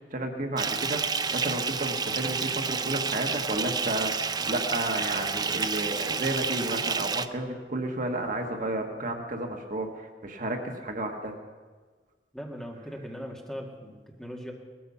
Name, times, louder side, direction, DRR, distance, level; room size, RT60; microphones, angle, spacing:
voice 1, 0.1-11.3, right 1 dB, 50° right, 4 dB, 1.4 m, -32 dB
Bathtub (filling or washing) / Fill (with liquid), 0.6-7.3, right 5 dB, 25° right, 0.5 m, -30 dB
voice 2, 12.3-14.5, equal, 5° left, 0 dB, 1.9 m, -39 dB
19.0 x 14.0 x 5.5 m, 1.4 s
head